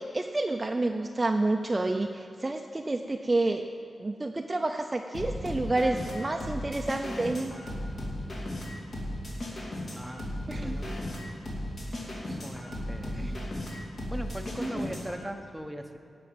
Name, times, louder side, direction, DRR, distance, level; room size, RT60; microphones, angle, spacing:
voice 1, 0.0-3.7 4.0-7.5 10.5-10.8 12.3-12.4 13.2-13.4 13.7-13.8 14.6-14.9, right 2 dB, 20° right, 4 dB, 0.5 m, -29 dB
sound 1, 5.1-15.3, left 1 dB, 55° left, 2.5 m, -36 dB
voice 2, 9.9-10.3 10.6-10.9 12.3-13.4 14.1-16.0, equal, ahead, 5 dB, 0.9 m, -39 dB
16.5 x 6.1 x 9.1 m, 2.4 s
wide cardioid pair, 140°, 0 cm